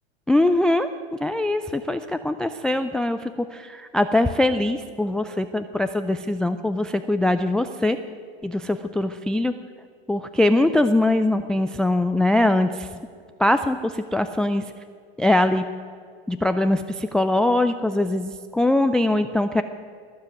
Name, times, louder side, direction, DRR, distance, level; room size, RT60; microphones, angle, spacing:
voice 1, 0.3-8.0 8.4-9.5 10.1-12.9 13.4-14.6 15.2-15.7 16.3-19.6, left 1 dB, ahead, 10 dB, 0.3 m, -22 dB
20.0 x 7.5 x 9.2 m, 2.2 s
hypercardioid pair, 105°, 33 cm